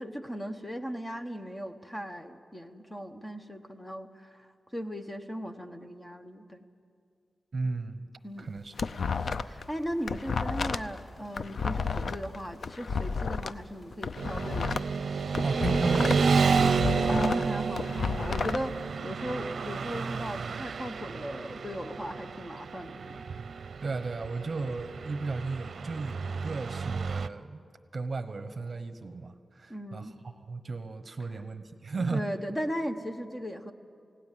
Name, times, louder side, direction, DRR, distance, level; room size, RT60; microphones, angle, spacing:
voice 1, 0.0-6.7 8.2-8.5 9.2-14.8 17.1-23.2 29.7-30.1 32.1-33.7, equal, 15° left, 7 dB, 1.0 m, -37 dB
voice 2, 7.5-8.1 8.4-8.7 15.4-16.3 23.8-27.6 27.9-32.3, right 3 dB, 45° right, 10 dB, 1.1 m, -35 dB
sound 1, 8.4-9.6 9.9-13.5 13.9-16.3 16.6-18.6, left 5 dB, 65° left, 0.6 m, -32 dB
sound 2, 10.2-15.7, left 1 dB, 40° left, 5.2 m, -61 dB
Motorcycle / Traffic noise roadway noise, 14.2-27.3, right 5 dB, 80° right, 0.6 m, -30 dB
29.0 x 17.5 x 7.6 m, 2.3 s
wide cardioid pair, 135°, 0 cm